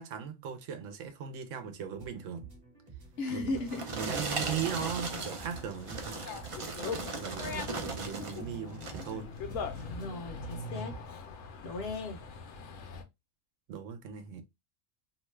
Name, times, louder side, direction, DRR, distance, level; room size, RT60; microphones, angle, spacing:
voice 1, 0.0-2.5 3.3-3.5 3.9-6.3 7.1-9.3 13.7-14.4, right 8 dB, 80° right, 1.0 m, -38 dB
sound 1, 2.0-11.0, right 5 dB, 30° right, 0.9 m, -49 dB
voice 2, 3.2-4.0 9.8-11.0 11.6-12.2, left 2 dB, 60° left, 0.9 m, -37 dB
sound 2, 3.3-8.4 8.7-9.2 9.7-9.9, right 3 dB, 45° right, 0.4 m, -37 dB
Dog, 4.4-13.0, left 5 dB, 85° left, 1.0 m, -42 dB
2.8 x 2.2 x 3.1 m
omnidirectional pair, 1.3 m